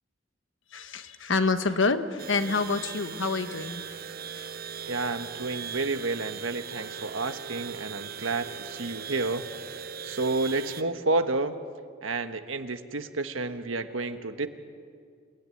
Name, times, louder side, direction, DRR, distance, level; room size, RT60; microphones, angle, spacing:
voice 1, 0.7-4.0 4.4-4.5, left 4 dB, 65° left, 9 dB, 1.3 m, -27 dB
sound 1, 2.2-10.8, right 7 dB, 50° right, 0.7 m, -39 dB
voice 2, 4.9-9.5 10.0-11.5 12.0-14.5, right 3 dB, 80° right, 8 dB, 1.4 m, -30 dB
27.5 x 17.0 x 9.9 m, 2.1 s
head